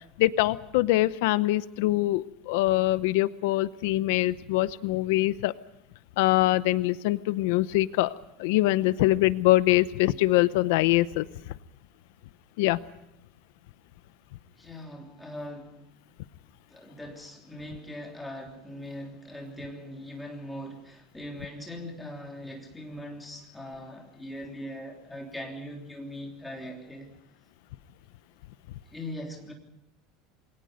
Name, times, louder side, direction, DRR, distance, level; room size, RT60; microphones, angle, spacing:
voice 1, 0.2-5.5 6.2-8.1 8.4-11.2 12.6-12.8, left 17 dB, 70° left, 0.7 m, -23 dB
voice 2, 14.6-15.8 16.7-27.1 28.9-29.5, left 1 dB, 5° left, 3.3 m, -40 dB
28.0 x 22.0 x 5.1 m
cardioid pair, 180°, 0 cm